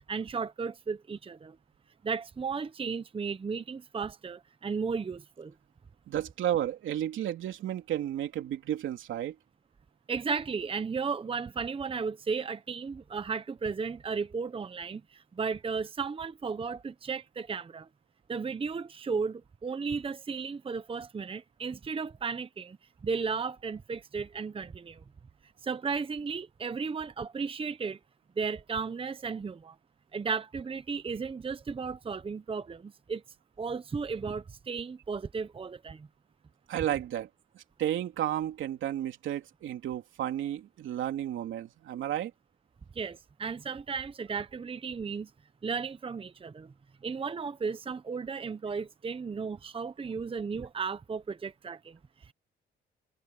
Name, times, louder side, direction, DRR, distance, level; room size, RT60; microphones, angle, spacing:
voice 1, 0.1-1.6 2.0-5.5 10.1-17.9 18.3-22.8 23.0-25.0 25.6-28.0 28.4-29.8 30.1-33.2 33.6-36.1 42.9-45.3 45.6-46.7 47.0-52.3, right 5 dB, 25° right, 0.9 m, -34 dB
voice 2, 6.1-9.3 36.7-37.3 37.5-42.3, right 11 dB, 75° right, 3.2 m, -32 dB
cardioid pair, 90°, 20 cm